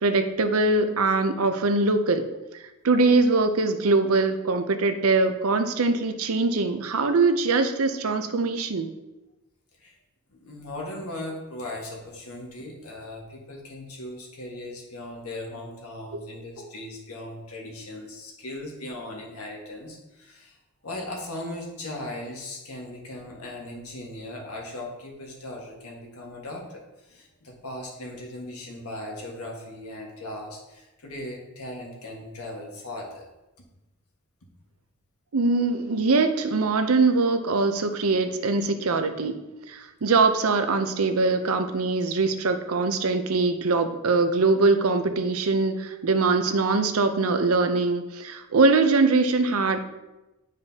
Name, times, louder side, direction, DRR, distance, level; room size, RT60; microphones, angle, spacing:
voice 1, 0.0-2.3 2.5-8.9 16.1-16.2 35.3-39.4 39.7-49.8, right 3 dB, 80° right, 8 dB, 0.6 m, -22 dB
voice 2, 10.3-20.6 20.8-33.2, left 1 dB, 90° left, -1 dB, 1.6 m, -38 dB
9.6 x 5.0 x 2.8 m, 1.0 s
head